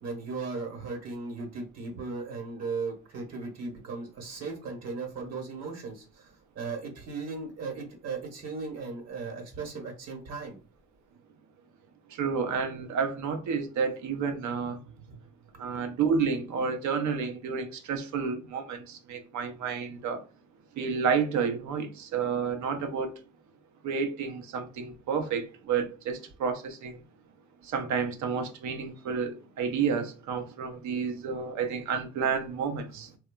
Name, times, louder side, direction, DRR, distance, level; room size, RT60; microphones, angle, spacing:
voice 1, 0.0-10.6 15.1-15.2, right 4 dB, 60° right, 1.1 m, -37 dB
voice 2, 12.1-14.8 15.6-20.2 20.8-23.1 23.8-27.0 27.6-33.1, right 6 dB, 75° right, 0.6 m, -30 dB
2.8 x 2.2 x 2.2 m
cardioid pair, 90°, 30 cm